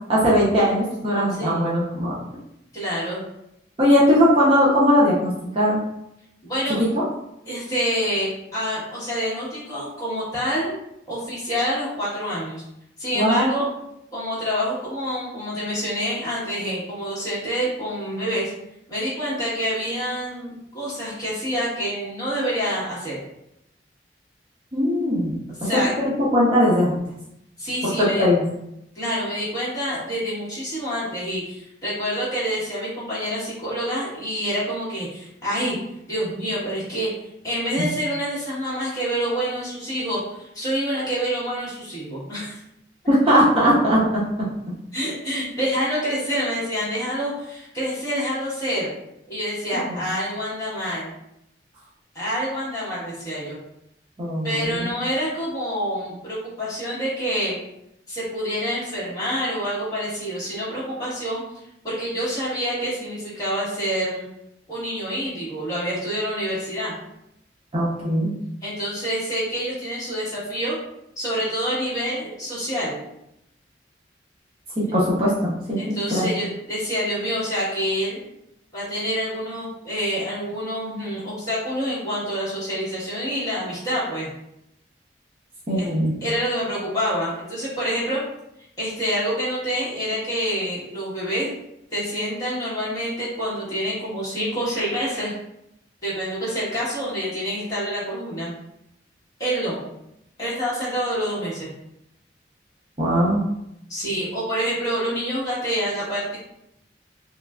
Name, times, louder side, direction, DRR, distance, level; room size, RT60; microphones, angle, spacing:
voice 1, 0.1-2.1 3.8-5.8 6.9-7.0 13.1-13.5 24.7-25.3 26.0-26.9 27.8-27.9 28.2-28.4 43.1-44.2 49.7-50.0 54.2-54.9 67.7-68.3 74.8-76.3 85.7-86.1 103.0-103.4, equal, 30° right, -7 dB, 0.6 m, -19 dB
voice 2, 2.7-3.2 6.4-6.8 7.5-10.7 11.1-12.6 13.0-13.7 14.1-18.5 18.9-23.2 25.6-25.9 27.6-28.2 28.9-35.8 36.1-37.1 37.4-42.6 44.9-48.9 49.3-51.1 52.1-53.6 54.4-57.5 58.1-61.4 61.8-64.3 64.7-67.0 68.6-70.8 71.2-73.0 75.8-78.2 78.7-84.3 85.8-85.9 86.2-88.2 88.8-91.5 91.9-95.3 96.0-98.5 99.4-99.8 100.4-101.7 103.9-106.4, equal, 20° left, -9 dB, 1.2 m, -27 dB
3.2 x 2.4 x 2.3 m, 0.81 s
head